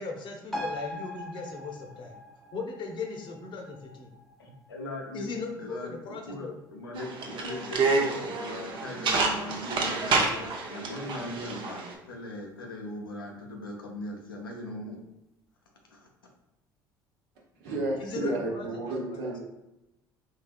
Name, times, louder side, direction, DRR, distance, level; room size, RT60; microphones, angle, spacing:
voice 1, 0.0-2.1 2.5-4.1 5.1-6.6 18.0-19.3, left 3 dB, 45° left, 2 dB, 0.8 m, -38 dB
sound 1, 0.5-7.5 7.8-7.9, left 1 dB, ahead, 0.6 m, -42 dB
voice 2, 4.4-5.9 6.2-15.0 15.9-16.1, left 1 dB, 90° left, 0 dB, 0.6 m, -40 dB
sound 2, 7.0-11.9, right 3 dB, 45° right, 0.7 m, -28 dB
voice 3, 17.6-19.4, right 2 dB, 70° right, -3 dB, 1.0 m, -32 dB
3.8 x 2.7 x 2.5 m, 0.89 s
hypercardioid pair, 60°, 11 cm